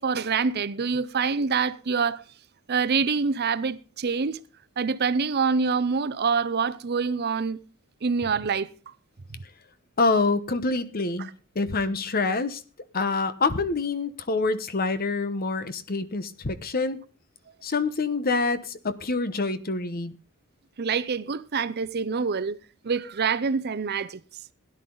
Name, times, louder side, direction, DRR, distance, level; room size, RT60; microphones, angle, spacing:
voice 1, 0.0-2.2 2.7-4.4 4.8-7.6 8.0-8.7 20.8-22.6 22.8-24.2, right 5 dB, 50° right, 0.6 m, -26 dB
voice 2, 10.0-11.3 11.5-12.6 12.9-17.0 17.6-20.1, left 3 dB, 45° left, 1.0 m, -26 dB
17.0 x 10.5 x 3.9 m
head